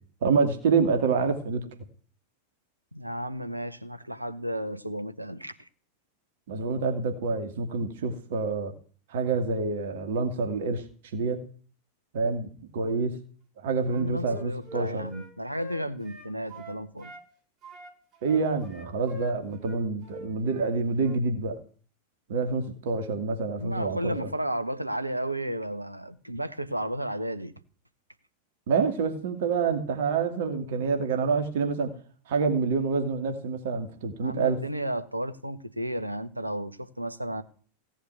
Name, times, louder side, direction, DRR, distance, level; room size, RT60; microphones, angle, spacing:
voice 1, 0.2-1.6 6.5-8.7 9.1-10.8 11.1-11.4 12.1-13.2 13.6-15.1 18.2-21.5 22.3-24.3 28.7-31.9 32.3-34.6, right 4 dB, 55° right, 2.7 m, -27 dB
voice 2, 2.9-5.7 13.9-17.1 23.6-27.5 34.2-37.4, right 1 dB, 85° right, 1.4 m, -33 dB
Wind instrument woodwind instrument, 13.8-17.3 17.6-20.7 21.0-21.2, right 1 dB, 30° right, 5.9 m, -44 dB
17.0 x 7.3 x 9.5 m
figure-of-eight pair, 90°, 0 cm